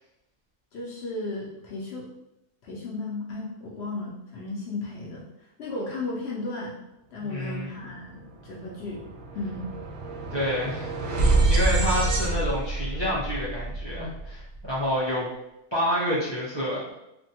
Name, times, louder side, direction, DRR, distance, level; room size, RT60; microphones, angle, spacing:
voice 1, 0.7-2.1 2.6-5.3 5.6-6.8 7.1-9.0 9.3-9.7, left 2 dB, 65° left, -4 dB, 0.8 m, -34 dB
voice 2, 7.2-7.7 10.3-10.9 11.5-15.3 15.7-16.8, equal, 30° right, -9 dB, 0.5 m, -28 dB
sound 1, 8.0-8.2 8.5-14.7, right 2 dB, 65° right, 0.8 m, -27 dB
3.3 x 2.1 x 2.8 m, 0.87 s
omnidirectional pair, 1.4 m